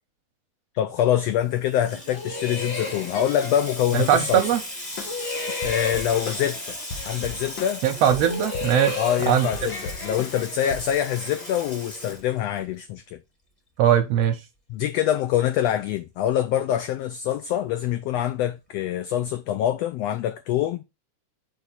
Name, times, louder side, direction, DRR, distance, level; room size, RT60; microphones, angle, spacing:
voice 1, 0.7-4.5 5.6-6.8 7.0-7.8 9.0-13.2 14.7-20.8, left 11 dB, 85° left, 1.4 m, -25 dB
Water tap faucet / Sink (filling or washing), 1.3-12.8, equal, 15° left, 1.5 m, -38 dB
sound 1, 2.1-4.7 5.0-7.6 8.0-11.8, left 3 dB, 45° left, 2.2 m, -34 dB
voice 2, 3.9-4.6 7.8-9.5 13.8-14.4, right 10 dB, 75° right, 1.5 m, -20 dB
sound 2, 5.0-5.3 5.6-6.6 6.9-9.2 9.5-10.9, left 4 dB, 65° left, 1.2 m, -36 dB
5.0 x 4.7 x 4.0 m
omnidirectional pair, 3.4 m